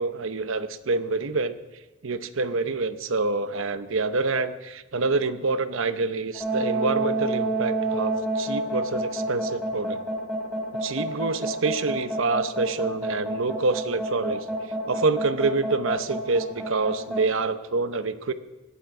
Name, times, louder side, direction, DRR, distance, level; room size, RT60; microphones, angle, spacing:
voice 1, 0.0-1.6 2.0-10.0 10.8-14.5 14.9-18.3, right 3 dB, 65° right, 11 dB, 0.8 m, -27 dB
sound 1, 6.3-17.2, right 2 dB, 5° left, 3.9 m, -28 dB
17.5 x 12.0 x 4.9 m, 1.1 s
head